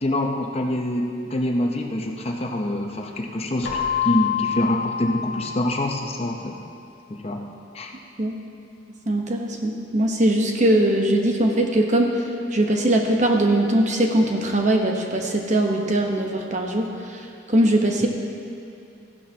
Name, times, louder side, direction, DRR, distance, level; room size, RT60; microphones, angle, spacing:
voice 1, 0.0-6.6 7.1-7.5 7.7-7.9, left 1 dB, 35° left, 2 dB, 0.8 m, -25 dB
Keyboard (musical), 3.6-6.4, left 8 dB, 70° left, 1.9 m, -27 dB
voice 2, 9.1-12.2 12.5-17.2 17.5-18.1, right 1 dB, 40° right, 2 dB, 1.0 m, -21 dB
15.0 x 11.5 x 2.8 m, 2.7 s
head